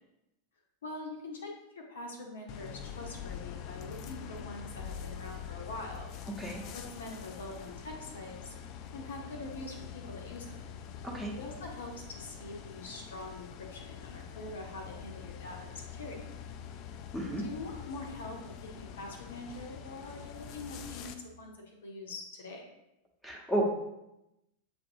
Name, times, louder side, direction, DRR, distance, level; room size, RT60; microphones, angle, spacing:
voice 1, 0.8-1.5 1.8-6.1 6.7-8.5 8.9-10.6 11.3-16.2 17.4-18.4 18.7-22.6, left 2 dB, 65° left, 1 dB, 0.7 m, -44 dB
sound 1, 2.5-21.2, left 8 dB, 40° left, 0.3 m, -45 dB
voice 2, 17.1-17.4 23.2-23.6, right 1 dB, ahead, -4 dB, 1.0 m, -32 dB
7.3 x 2.6 x 2.7 m, 0.89 s
figure-of-eight pair, 90°, 0 cm